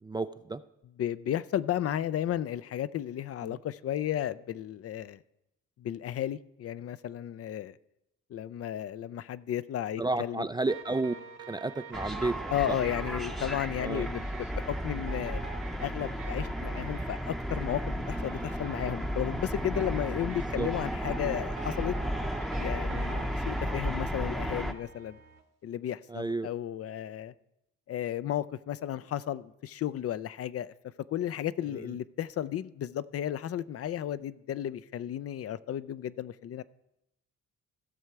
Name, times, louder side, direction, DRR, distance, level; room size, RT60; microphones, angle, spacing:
voice 1, 0.0-0.6 3.4-3.6 10.0-11.1 11.5-12.8 13.8-14.1 20.5-20.7 23.1-23.4 26.1-26.5 31.7-31.9, right 2 dB, 15° right, 0.3 m, -32 dB
voice 2, 1.0-5.2 5.8-7.8 8.3-10.5 12.5-15.4 15.8-21.9 22.6-25.2 25.6-27.3 27.9-30.7 31.1-36.6, left 11 dB, 50° left, 0.5 m, -33 dB
sound 1, 10.7-25.4, right 7 dB, 55° right, 1.2 m, -46 dB
sound 2, 11.9-24.7, equal, ahead, 0.7 m, -34 dB
15.5 x 6.6 x 4.7 m
cardioid pair, 90°, 30 cm